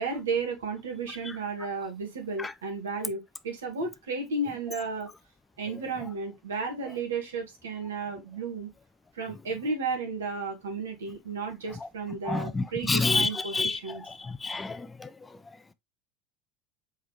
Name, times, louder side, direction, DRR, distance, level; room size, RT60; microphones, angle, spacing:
voice 1, 0.0-5.1 5.6-8.7 9.1-14.0, right 4 dB, 70° right, 1.5 m, -33 dB
voice 2, 12.2-15.4, left 3 dB, 15° left, 0.4 m, -29 dB
4.6 x 3.6 x 3.2 m
figure-of-eight pair, 75°, 0 cm